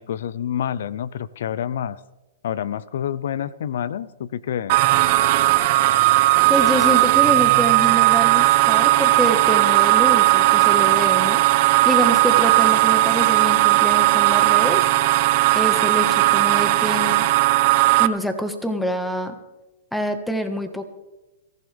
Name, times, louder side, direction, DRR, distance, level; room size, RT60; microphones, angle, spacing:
voice 1, 0.0-2.0 2.4-4.8, left 9 dB, 70° left, 19 dB, 0.7 m, -28 dB
sound 1, 4.7-18.1, right 17 dB, 50° right, 0.7 m, -17 dB
voice 2, 6.5-11.4 11.8-14.8 15.5-17.3 18.0-19.4 19.9-20.8, equal, ahead, 8 dB, 1.5 m, -26 dB
22.0 x 15.0 x 3.5 m, 1.1 s
hypercardioid pair, 135°, 0 cm